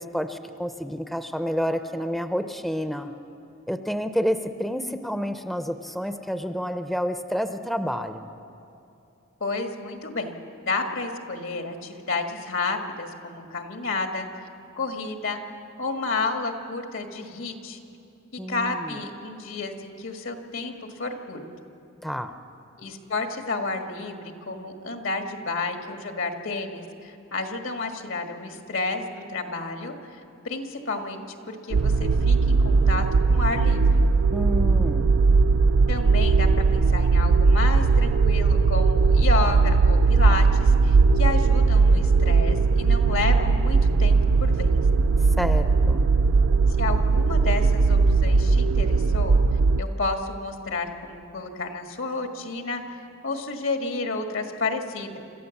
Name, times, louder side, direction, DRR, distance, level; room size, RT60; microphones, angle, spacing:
voice 1, 0.0-3.1 3.7-8.3 18.4-19.0 22.0-22.3 34.3-35.2 45.4-46.1, equal, ahead, 8 dB, 0.6 m, -29 dB
voice 2, 9.4-14.4 14.7-15.4 15.8-17.8 18.5-20.7 21.0-21.4 22.8-29.9 30.4-34.0 35.9-44.7 46.8-49.4 49.8-55.2, left 3 dB, 80° left, 4 dB, 1.8 m, -31 dB
sound 1, 31.7-49.8, right 4 dB, 85° right, 0.4 m, -19 dB
27.0 x 13.5 x 7.2 m, 2.7 s
head